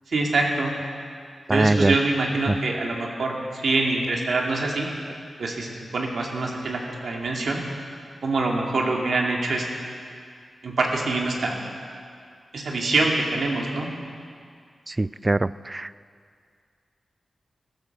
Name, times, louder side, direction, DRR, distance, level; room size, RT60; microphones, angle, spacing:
voice 1, 0.1-0.7 1.5-4.9 5.4-7.6 8.2-9.6 10.6-11.6 12.5-13.9, right 3 dB, 75° right, 0 dB, 2.5 m, -25 dB
voice 2, 1.5-1.9 2.5-2.6 14.9-15.9, right 2 dB, 25° right, 17 dB, 0.3 m, -22 dB
16.5 x 13.0 x 6.7 m, 2.2 s
wide cardioid pair, 80°, 0 cm